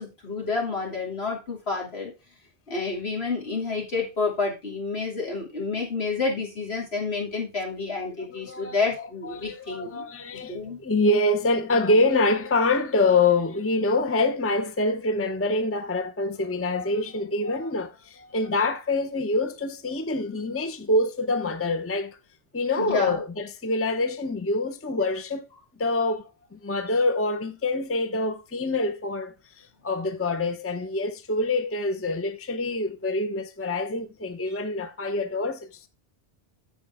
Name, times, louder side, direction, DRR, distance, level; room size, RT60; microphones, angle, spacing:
voice 1, 0.0-2.1 2.7-10.0 10.5-10.8 22.8-23.2, left 4 dB, 70° left, 3.2 m, -29 dB
voice 2, 8.3-22.2 22.5-25.5 25.8-35.8, left 2 dB, 15° left, 0.7 m, -26 dB
13.5 x 5.0 x 3.6 m
omnidirectional pair, 1.1 m